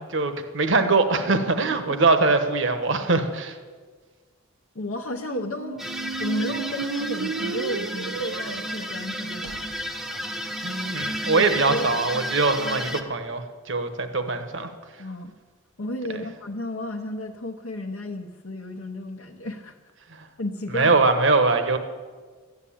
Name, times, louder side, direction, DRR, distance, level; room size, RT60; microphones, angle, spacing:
voice 1, 0.0-3.6 10.6-14.7 20.7-21.8, right 3 dB, 55° right, 8 dB, 1.2 m, -22 dB
voice 2, 4.7-5.8 6.2-9.7 11.1-11.8 15.0-15.3 15.8-19.8 20.4-21.0, left 1 dB, 65° left, 0 dB, 0.9 m, -33 dB
Squeak, 5.1-11.1, right 6 dB, 85° right, 0.4 m, -35 dB
sound 1, 5.8-13.0, equal, ahead, 0.6 m, -32 dB
13.5 x 9.7 x 8.7 m, 1.5 s
head